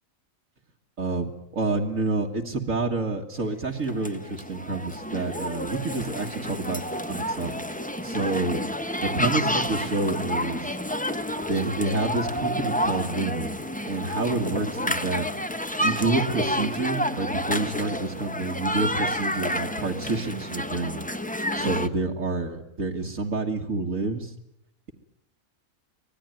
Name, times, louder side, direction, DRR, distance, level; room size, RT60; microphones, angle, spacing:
voice 1, 1.0-7.5 8.0-8.7 9.0-10.7 11.5-15.3 15.8-21.0 21.5-24.3, right 3 dB, 75° right, 0 dB, 2.3 m, -28 dB
sound 1, 3.8-21.9, left 1 dB, 5° left, 1.0 m, -30 dB
25.0 x 19.5 x 9.2 m, 0.79 s
omnidirectional pair, 1.4 m